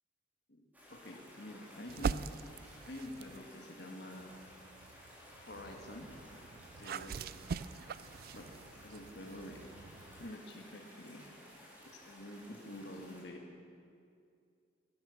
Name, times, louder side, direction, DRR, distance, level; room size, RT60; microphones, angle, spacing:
voice 1, 0.5-2.3 2.9-4.4 5.3-6.1 6.8-7.4 8.3-8.5 8.8-9.7 10.2-11.3 11.9-13.5, left 1 dB, 65° left, 2 dB, 1.8 m, -48 dB
sound 1, 0.7-13.2, left 1 dB, 10° right, 3.7 m, -56 dB
sound 2, 1.9-3.5 4.1-10.3, right 5 dB, 55° right, 0.3 m, -43 dB
16.0 x 12.0 x 7.1 m, 2.4 s
head